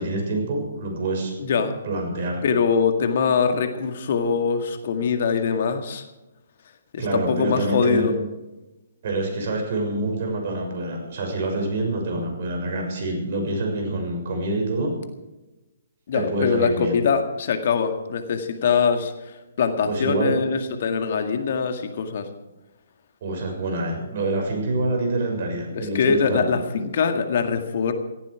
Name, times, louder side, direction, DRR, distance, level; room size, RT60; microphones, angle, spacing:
voice 1, 0.0-2.4 5.5-5.6 7.0-8.1 9.0-14.9 16.1-17.0 19.9-20.4 23.2-26.5, right 2 dB, 50° right, 2 dB, 6.5 m, -26 dB
voice 2, 1.4-1.7 2.4-6.1 6.9-8.1 16.1-19.1 19.6-22.3 25.7-27.9, left 6 dB, 50° left, 7 dB, 1.9 m, -23 dB
17.5 x 15.5 x 4.9 m, 1.0 s
figure-of-eight pair, 130°, 0 cm